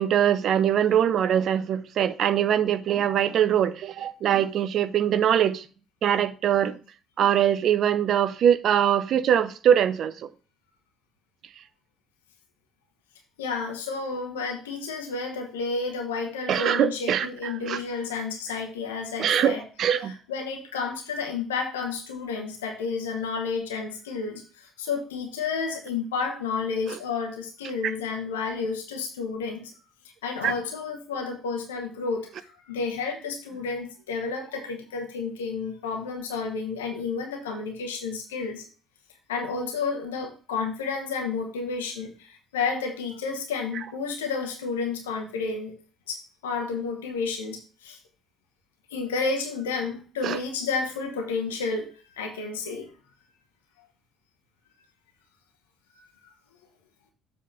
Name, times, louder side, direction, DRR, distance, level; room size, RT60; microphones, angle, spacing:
voice 1, 0.0-5.6 6.0-6.8 7.2-10.3 16.5-17.8 19.2-20.1 30.4-30.5 50.2-50.4, right 9 dB, 50° right, 0.5 m, -22 dB
voice 2, 13.4-19.6 20.0-29.7 30.2-38.6 39.3-45.7 46.1-48.0 48.9-51.9 52.2-52.9, left 4 dB, 75° left, 1.1 m, -31 dB
7.3 x 3.6 x 5.6 m
figure-of-eight pair, 50°, 0 cm